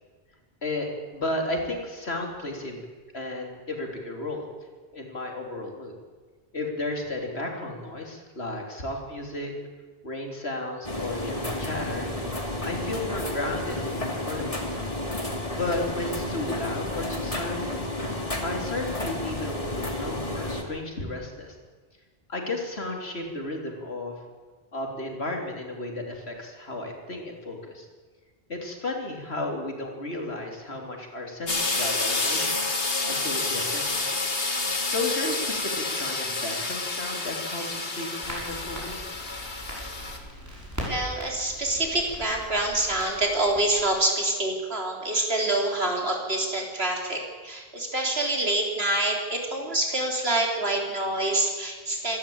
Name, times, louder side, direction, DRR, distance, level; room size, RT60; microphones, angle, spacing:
voice 1, 1.1-2.8 3.1-4.5 4.9-5.9 6.5-9.5 10.0-12.1 12.6-14.6 15.5-17.7 18.4-21.6 22.3-24.2 24.7-27.9 28.5-32.8 33.1-34.0 34.9-39.0, left 2 dB, 85° left, 2 dB, 3.7 m, -33 dB
sound 1, 10.8-20.6, left 1 dB, 35° left, 2.6 m, -31 dB
sound 2, 31.5-40.2, left 3 dB, 65° left, 2.3 m, -29 dB
Crackle, 38.2-43.9, equal, 15° right, 6.4 m, -40 dB
voice 2, 40.9-52.2, right 2 dB, 75° right, 1 dB, 4.1 m, -26 dB
26.0 x 12.5 x 8.8 m, 1.4 s
omnidirectional pair, 1.0 m